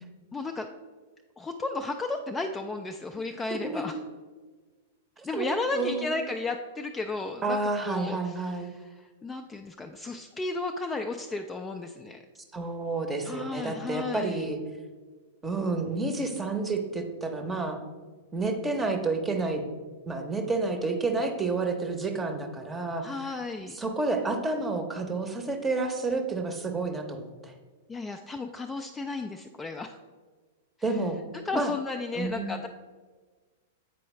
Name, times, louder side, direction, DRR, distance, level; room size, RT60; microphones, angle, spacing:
voice 1, 0.3-0.7 1.4-4.0 5.2-7.6 7.9-12.2 13.2-14.5 23.0-23.8 27.9-30.0 30.9-31.0 31.4-32.7, left 3 dB, 15° left, 5 dB, 0.3 m, -34 dB
voice 2, 3.5-3.8 5.2-6.2 7.4-8.7 12.5-14.6 15.4-17.8 18.3-19.6 20.1-23.1 23.7-27.5 30.8-31.2 31.5-31.7 32.1-32.5, right 3 dB, 15° right, 6 dB, 0.7 m, -30 dB
8.2 x 4.6 x 3.1 m, 1.4 s
figure-of-eight pair, 100°, 0 cm